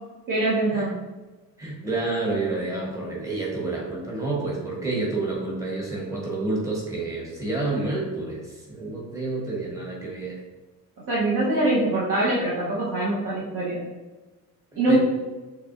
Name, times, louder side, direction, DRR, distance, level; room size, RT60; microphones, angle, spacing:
voice 1, 0.3-0.9 11.1-13.8 14.8-15.0, right 2 dB, 65° right, -6 dB, 1.0 m, -23 dB
voice 2, 1.6-8.4 8.7-10.4 14.9-15.0, right 3 dB, 10° right, -4 dB, 1.0 m, -29 dB
6.6 x 3.1 x 2.5 m, 1.2 s
cardioid pair, 180°, 36 cm